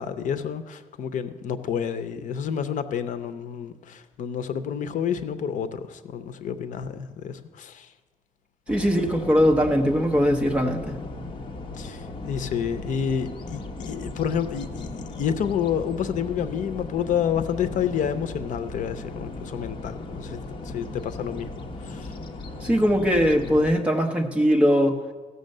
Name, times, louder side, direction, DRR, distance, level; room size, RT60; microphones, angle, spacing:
voice 1, 0.0-7.9 11.8-21.5 21.8-22.1, left 8 dB, 65° left, 0.7 m, -29 dB
sound 1, 8.7-23.7, left 2 dB, 40° left, 0.9 m, -37 dB
voice 2, 8.7-11.0 22.6-25.0, equal, 10° right, 0.9 m, -21 dB
15.5 x 6.8 x 6.5 m
cardioid pair, 175°, 14 cm